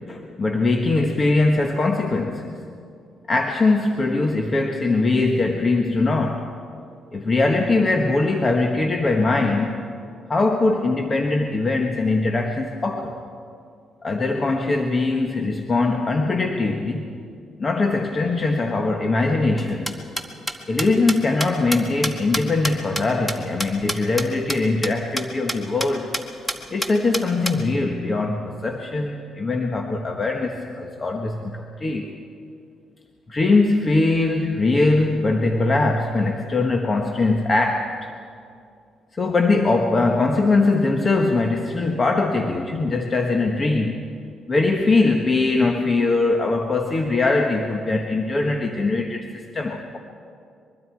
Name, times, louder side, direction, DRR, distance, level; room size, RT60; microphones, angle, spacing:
voice 1, 0.0-2.5 3.3-6.5 7.1-9.9 10.3-13.2 14.0-17.1 17.6-20.0 20.7-26.2 26.7-32.1 33.3-38.1 39.1-44.0 44.5-50.0, left 3 dB, 35° left, 3 dB, 1.5 m, -21 dB
sound 1, 19.6-24.2 24.5-24.6 24.8-24.9 25.2-25.3 25.5-25.9 26.1-26.2 26.5-27.5, equal, 5° left, 1.8 m, -27 dB
23.5 x 23.0 x 4.8 m, 2.4 s
cardioid pair, 90°, 0 cm